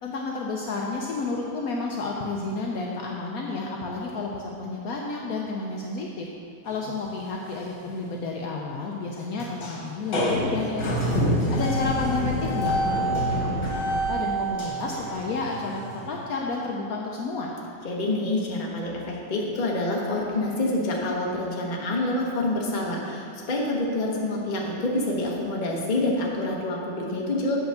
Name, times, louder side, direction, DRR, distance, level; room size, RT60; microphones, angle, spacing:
voice 1, 0.0-6.3 6.6-11.1 11.5-13.8 14.1-15.8 16.1-17.5, left 3 dB, 85° left, -1 dB, 0.7 m, -31 dB
sound 1, 6.9-7.1 7.4-7.5 7.9-8.0 9.4-9.8 10.1-16.2, equal, 55° left, 1.8 m, -26 dB
voice 2, 17.8-27.6, left 2 dB, 35° left, -2 dB, 0.7 m, -27 dB
8.0 x 4.6 x 6.5 m, 2.4 s
omnidirectional pair, 2.3 m